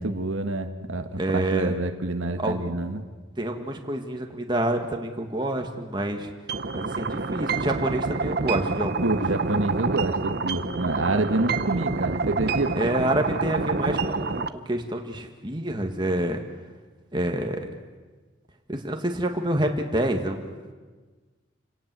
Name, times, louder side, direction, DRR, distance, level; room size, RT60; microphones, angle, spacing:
voice 1, 0.0-3.0 9.0-12.8, right 2 dB, 85° right, 7 dB, 1.5 m, -27 dB
voice 2, 1.2-1.7 2.4-2.8 3.4-6.3 6.7-9.1 12.8-16.4 17.1-17.7 18.7-20.7, right 1 dB, 20° right, 3 dB, 2.0 m, -27 dB
sound 1, 6.5-14.5, right 4 dB, 50° right, 0.8 m, -27 dB
28.5 x 18.0 x 7.8 m, 1.4 s
head